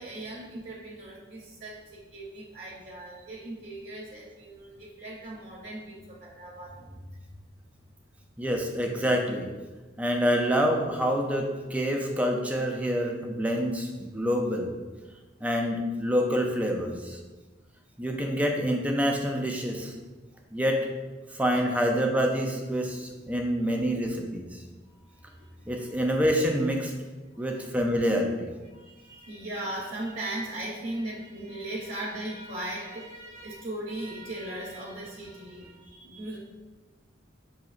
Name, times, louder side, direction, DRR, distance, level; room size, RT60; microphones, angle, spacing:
voice 1, 0.0-7.0 24.9-25.7 27.3-27.5 28.7-36.4, right 1 dB, 45° right, -4 dB, 0.6 m, -38 dB
voice 2, 8.4-9.5 10.0-14.7 15.4-17.2 18.0-19.9 20.5-20.9 21.3-24.6 25.7-26.9 27.4-28.5, equal, 10° right, 2 dB, 0.3 m, -27 dB
6.1 x 2.7 x 2.4 m, 1.3 s
head